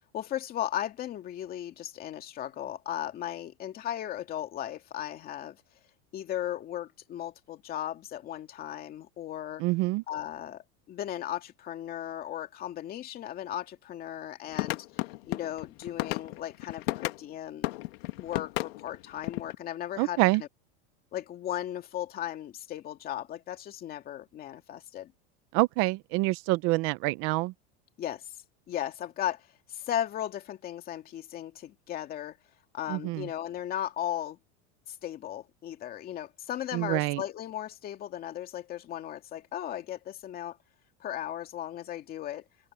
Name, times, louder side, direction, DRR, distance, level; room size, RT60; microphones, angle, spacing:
voice 1, 0.1-5.6 6.1-9.6 10.1-10.6 10.9-14.9 15.3-17.7 18.2-20.5 21.1-25.1 28.0-28.3 28.7-32.4 32.7-34.4 34.9-40.6 41.0-42.4, left 11 dB, 30° left, 2.4 m, -36 dB
voice 2, 9.6-10.0 20.0-20.4 25.5-27.5 32.9-33.3 36.7-37.2, right 22 dB, 45° right, 0.6 m, -26 dB
sound 1, 14.5-17.2 17.6-19.5, left 20 dB, 75° left, 1.8 m, -33 dB
supercardioid pair, 165°, 31 cm